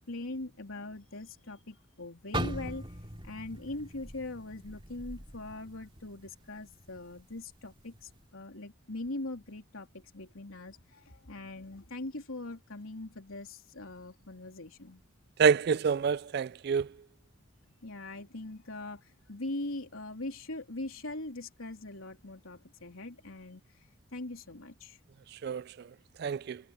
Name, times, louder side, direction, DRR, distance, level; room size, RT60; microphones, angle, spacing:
voice 1, 0.1-2.9 3.2-15.0 17.8-23.6 24.1-25.0, left 2 dB, 90° left, 3.3 m, -41 dB
sound 1, 2.3-6.4 6.7-7.0 7.6-8.0, right 1 dB, 25° right, 2.8 m, -40 dB
voice 2, 15.4-16.9 25.4-25.6 26.2-26.6, right 6 dB, 50° right, 0.3 m, -27 dB
head